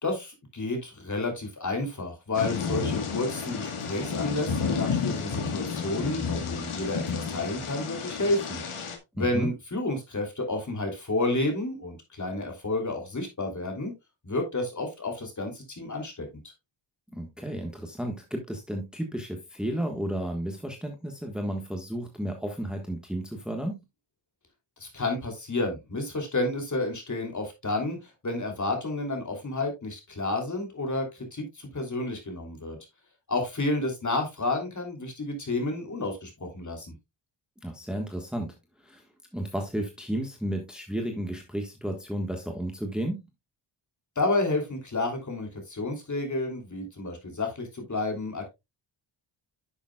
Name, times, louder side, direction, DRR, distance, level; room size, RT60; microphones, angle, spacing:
voice 1, 0.0-8.6 9.1-13.9 14.2-16.3 24.8-32.8 33.3-36.9 44.1-48.5, left 2 dB, 35° left, 3 dB, 3.1 m, -30 dB
Thunder / Rain, 2.3-9.0, left 5 dB, 80° left, 1.9 m, -31 dB
voice 2, 9.2-9.5 17.1-23.8 37.6-38.5 38.8-39.0 39.3-43.2, right 1 dB, ahead, 3 dB, 1.4 m, -33 dB
10.5 x 7.1 x 2.3 m, 0.22 s
wide cardioid pair, 115°, 50 cm